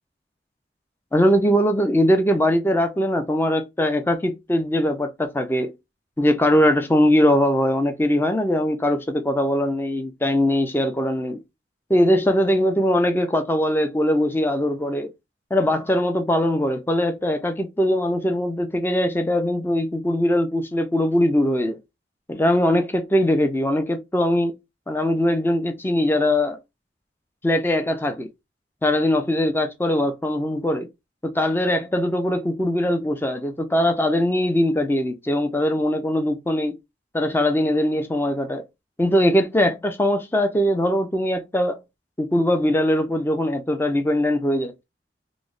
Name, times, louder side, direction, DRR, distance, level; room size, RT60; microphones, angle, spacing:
voice 1, 1.1-5.8 6.2-11.4 11.9-15.1 15.5-21.8 22.3-24.5 24.9-26.6 27.4-28.3 28.8-30.9 31.2-36.8 37.1-38.6 39.0-41.8 42.2-44.8, left 1 dB, 10° left, 0.4 m, -21 dB
3.0 x 2.1 x 3.8 m
head